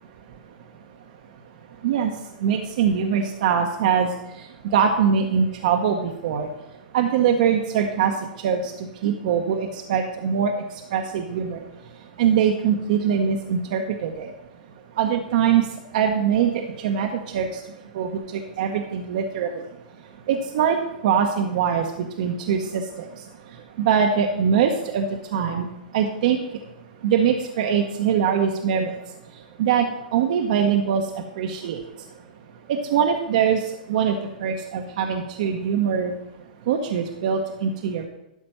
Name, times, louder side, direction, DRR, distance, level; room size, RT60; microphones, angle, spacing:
voice 1, 2.4-4.1 4.4-6.5 6.9-8.1 8.4-10.5 10.9-11.6 12.2-14.3 15.0-15.7 15.9-17.6 17.9-19.6 20.3-20.8 21.0-23.1 23.8-25.1 25.3-25.7 25.9-26.4 27.0-28.9 29.6-31.8 32.7-36.1 36.7-38.1, right 7 dB, 60° right, 3 dB, 0.8 m, -22 dB
12.0 x 4.3 x 5.5 m, 0.90 s
hypercardioid pair, 115°, 5 cm